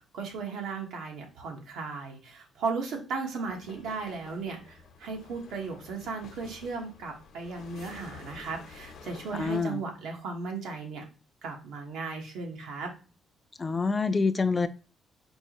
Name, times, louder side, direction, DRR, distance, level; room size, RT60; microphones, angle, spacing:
voice 1, 0.0-11.0 11.4-12.9, right 4 dB, 85° right, 1.1 m, -36 dB
sound 1, 3.4-9.6, left 5 dB, 75° left, 0.8 m, -50 dB
voice 2, 9.3-9.8 13.6-14.7, left 4 dB, 25° left, 0.3 m, -26 dB
4.5 x 2.4 x 3.0 m
cardioid pair, 90°, 0 cm